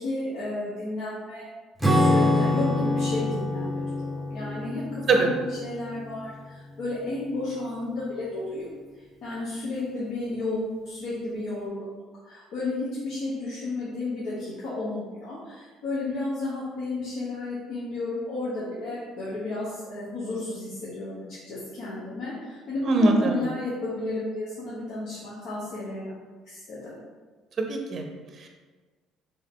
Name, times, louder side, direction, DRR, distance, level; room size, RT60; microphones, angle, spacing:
voice 1, 0.0-1.4 1.9-3.7 4.0-4.8 5.1-8.7 9.2-11.9 12.2-26.1 26.5-27.0, left 2 dB, 65° left, -8 dB, 0.9 m, -32 dB
Acoustic guitar / Strum, 1.8-6.6, left 1 dB, 5° right, 0.7 m, -26 dB
voice 2, 22.8-23.4 27.6-28.5, right 2 dB, 45° right, 3 dB, 0.6 m, -23 dB
3.7 x 2.8 x 3.6 m, 1.4 s
supercardioid pair, 75°, 0 cm